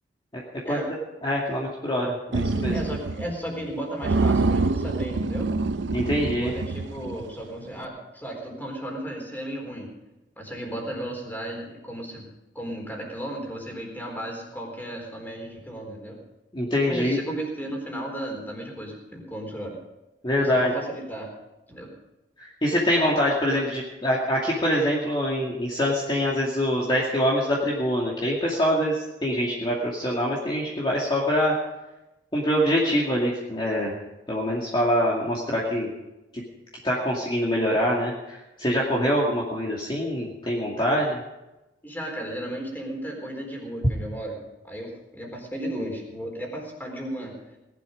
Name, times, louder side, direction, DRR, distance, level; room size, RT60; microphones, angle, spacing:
voice 1, 1.2-2.7 5.9-6.5 16.5-17.2 20.2-20.7 22.6-31.5 32.3-33.9 34.3-35.9 36.3-36.4 36.8-41.2, equal, 30° left, -4 dB, 2.4 m, -24 dB
sound 1, 2.3-3.3 3.6-3.7 4.0-7.4, right 3 dB, 80° right, 0.6 m, -26 dB
voice 2, 2.7-5.5 6.3-9.9 10.4-12.3 12.5-16.2 16.9-19.8 20.4-21.3 21.7-21.9 41.8-44.4 44.6-47.3, right 1 dB, 10° left, 1 dB, 4.1 m, -34 dB
18.5 x 12.0 x 5.2 m, 1.0 s
head